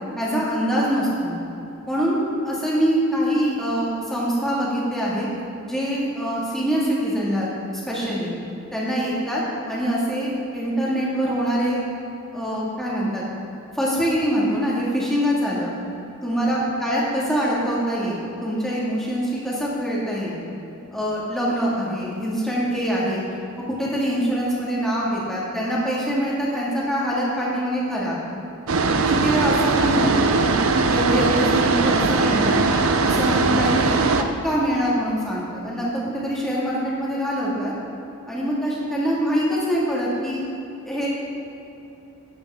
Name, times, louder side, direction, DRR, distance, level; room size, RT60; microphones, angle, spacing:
voice 1, 0.2-1.4 1.9-5.3 5.7-7.5 7.9-8.3 8.7-9.4 9.7-11.8 12.3-13.2 13.7-15.7 16.2-20.4 20.9-23.2 23.7-28.2 29.1-30.6 30.9-32.6 33.0-34.0 34.4-37.7 38.3-40.4 40.8-41.1, equal, ahead, -7 dB, 1.9 m, -24 dB
sound 1, 28.7-34.2, right 3 dB, 75° right, 0.6 m, -20 dB
12.0 x 8.7 x 3.6 m, 3.0 s
head